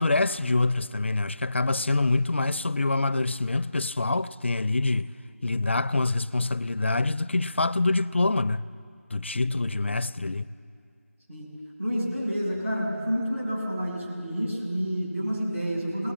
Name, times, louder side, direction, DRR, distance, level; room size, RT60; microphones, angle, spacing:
voice 1, 0.0-5.1 5.4-8.6 9.1-10.5, left 3 dB, 50° left, 0.4 m, -25 dB
voice 2, 11.8-16.1, equal, 60° right, 7.3 m, -29 dB
22.0 x 19.0 x 7.5 m
figure-of-eight pair, 175°, 8 cm